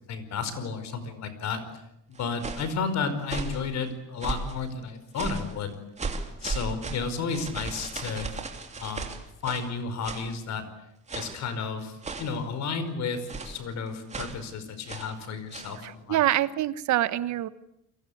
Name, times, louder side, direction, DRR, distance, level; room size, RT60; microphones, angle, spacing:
voice 1, 0.1-1.6 2.2-5.8 6.3-8.3 8.8-9.0 9.4-10.6 11.1-16.2, left 5 dB, 65° left, 11 dB, 5.0 m, -32 dB
sound 1, 2.1-2.7 3.2-3.6 4.2-4.6 5.1-5.5 6.0-9.7 10.0-10.3 11.1-11.5 12.0-12.4 13.3-13.6 14.1-14.4 14.9-15.2 15.5-15.8, right 4 dB, 25° right, 3.0 m, -36 dB
voice 2, 15.8-17.5, right 13 dB, 70° right, 14 dB, 1.3 m, -25 dB
30.0 x 23.0 x 8.7 m, 0.80 s
cardioid pair, 160°, 30 cm